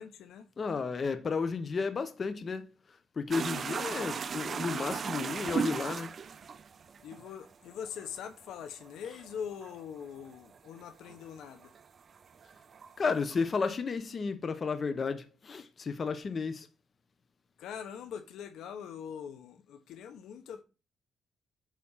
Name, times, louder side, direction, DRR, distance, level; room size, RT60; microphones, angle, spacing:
voice 1, 0.0-0.5 7.0-11.7 17.6-20.6, left 8 dB, 80° left, 1.1 m, -43 dB
voice 2, 0.6-2.7 3.2-6.2 13.0-16.7, left 5 dB, 40° left, 1.1 m, -33 dB
sound 1, 3.3-11.8 12.1-13.5, right 6 dB, 45° right, 0.5 m, -37 dB
8.6 x 4.2 x 5.7 m
cardioid pair, 90°, 0 cm